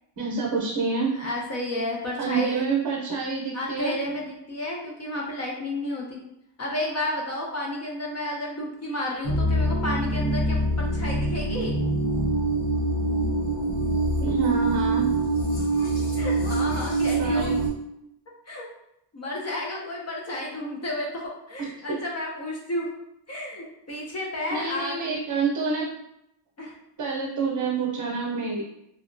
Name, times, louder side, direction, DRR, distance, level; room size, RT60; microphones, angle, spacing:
voice 1, 0.2-1.1 2.2-3.9 14.2-15.0 17.2-17.5 21.6-22.0 24.5-25.9 27.0-28.6, right 4 dB, 50° right, -3 dB, 0.7 m, -27 dB
voice 2, 1.1-2.6 3.5-6.2 6.6-11.7 16.2-17.5 18.5-18.7 19.1-22.9 23.3-25.2 26.6-26.7, left 1 dB, 35° left, -2 dB, 0.4 m, -31 dB
sound 1, 9.2-17.7, right 2 dB, 75° left, 1.0 m, -24 dB
2.8 x 2.2 x 2.5 m, 0.82 s
wide cardioid pair, 150°, 48 cm